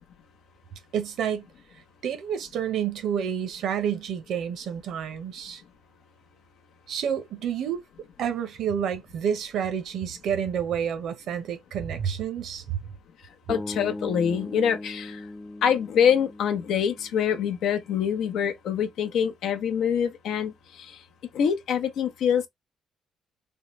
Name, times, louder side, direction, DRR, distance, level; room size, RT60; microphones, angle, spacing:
voice 1, 0.9-1.5 2.0-5.6 6.9-7.8 8.2-12.8, right 8 dB, 75° right, 0.8 m, -29 dB
voice 2, 13.5-15.2 15.6-21.0 21.3-22.4, left 8 dB, 80° left, 0.7 m, -25 dB
sound 1, 13.5-17.6, left 2 dB, 10° left, 0.6 m, -39 dB
3.6 x 2.1 x 3.0 m
cardioid pair, 90°, 0 cm